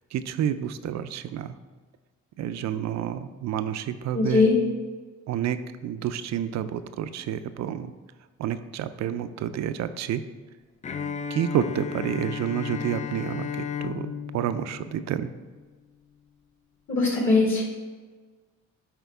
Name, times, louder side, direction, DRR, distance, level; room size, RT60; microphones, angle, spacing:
voice 1, 0.1-1.6 2.4-4.5 5.3-7.9 8.4-10.2 11.3-15.3, right 9 dB, 65° right, 12 dB, 0.5 m, -29 dB
voice 2, 4.1-4.5 16.9-17.6, left 3 dB, 45° left, -2 dB, 1.9 m, -21 dB
Bowed string instrument, 10.8-15.7, left 7 dB, 25° left, 0.4 m, -34 dB
8.1 x 4.4 x 3.5 m, 1.4 s
cardioid pair, 90°, 30 cm